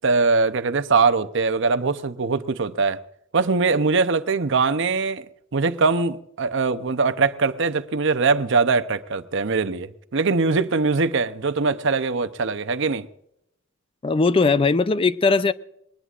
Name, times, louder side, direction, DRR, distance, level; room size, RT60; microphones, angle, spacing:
voice 1, 0.0-3.0 3.3-5.2 5.5-13.1, right 4 dB, 65° right, 0.7 m, -22 dB
voice 2, 14.0-15.5, left 4 dB, 25° left, 0.4 m, -19 dB
21.0 x 19.5 x 2.5 m
head